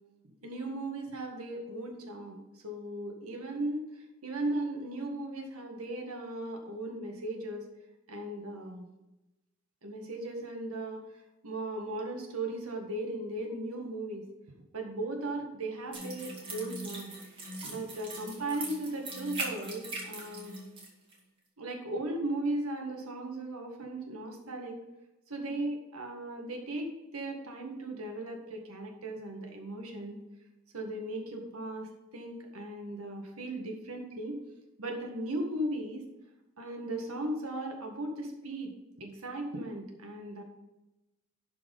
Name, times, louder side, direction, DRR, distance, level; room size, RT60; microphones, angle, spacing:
voice 1, 0.4-7.7 8.1-8.9 9.8-14.2 14.7-17.1 17.6-20.6 21.6-24.8 25.3-30.2 30.7-34.4 34.8-36.1 36.6-40.4, right 1 dB, 85° right, 2 dB, 1.8 m, -37 dB
sound 1, 15.9-20.9 21.1-21.2, right 2 dB, 25° right, 2.1 m, -40 dB
11.5 x 4.7 x 5.4 m, 0.99 s
head